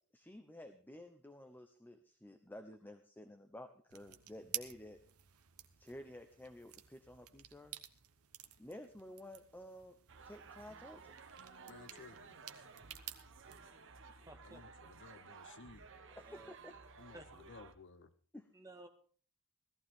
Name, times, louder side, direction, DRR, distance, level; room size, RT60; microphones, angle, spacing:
voice 1, 0.1-5.0 5.8-7.7 8.6-9.9 10.2-11.2 16.1-16.8 18.3-18.5, left 1 dB, 10° left, 7 dB, 0.9 m, -52 dB
sound 1, 3.9-13.6, right 13 dB, 90° right, 1.1 m, -51 dB
sound 2, 10.1-17.7, right 4 dB, 60° right, 1.4 m, -56 dB
voice 2, 11.6-12.3 14.4-15.8 17.0-18.1, left 4 dB, 55° left, 12 dB, 1.0 m, -56 dB
voice 3, 14.1-14.6 16.3-16.5 17.1-17.3 18.5-18.9, right 1 dB, 15° right, 4 dB, 2.0 m, -54 dB
16.5 x 14.5 x 3.7 m, 0.41 s
head